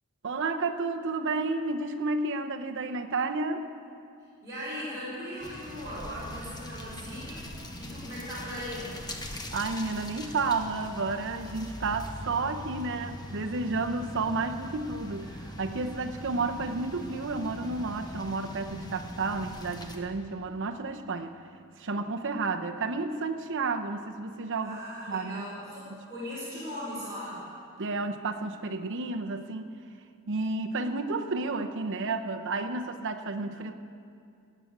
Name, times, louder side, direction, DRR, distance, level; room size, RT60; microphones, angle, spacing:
voice 1, 0.2-3.7 9.5-21.3 21.8-24.8 25.1-25.4 25.9-26.0 27.8-29.8 30.3-33.7, right 3 dB, 60° right, 5 dB, 0.8 m, -31 dB
voice 2, 4.4-9.0 24.6-27.5, equal, 15° right, -11 dB, 4.4 m, -39 dB
sound 1, 5.4-20.0, left 1 dB, 20° left, 1.1 m, -42 dB
sound 2, 11.9-22.4, left 2 dB, 55° left, 1.9 m, -49 dB
16.5 x 6.9 x 9.4 m, 2.4 s
head